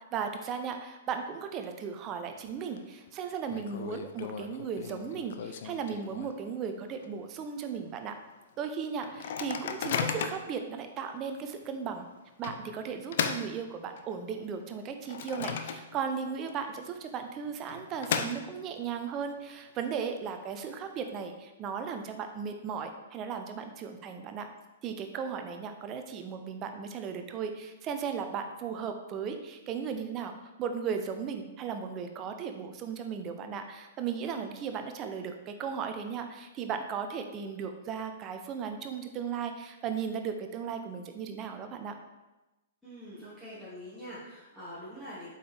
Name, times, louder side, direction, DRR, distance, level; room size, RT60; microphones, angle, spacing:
voice 1, 0.1-8.1 8.6-12.1 12.4-24.5 24.8-42.0, right 6 dB, 30° right, 6 dB, 0.8 m, -36 dB
Microwave oven, 2.3-2.8 3.1-3.2 3.5-6.6 7.0-7.1 7.4-7.7 8.2-8.3 9.0-10.6 11.2-11.3 12.4-14.3 14.7-16.2 16.5-16.6 17.4-18.9, left 7 dB, 55° left, 0.5 m, -36 dB
voice 2, 42.8-45.3, equal, 5° left, -13 dB, 2.4 m, -44 dB
7.8 x 5.5 x 3.4 m, 1.1 s
figure-of-eight pair, 110°, 0 cm